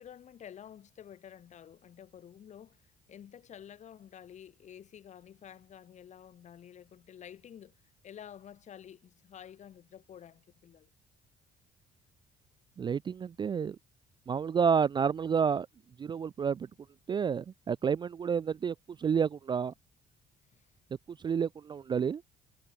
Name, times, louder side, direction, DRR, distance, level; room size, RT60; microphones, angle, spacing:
voice 1, 0.0-2.8 3.1-7.8 8.0-10.9 20.5-20.6, left 9 dB, 45° left, 0.9 m, -50 dB
voice 2, 12.8-13.8 14.3-15.7 16.0-16.7 17.1-19.7 21.2-22.2, right 6 dB, 25° right, 0.3 m, -29 dB
cardioid pair, 110°, 17 cm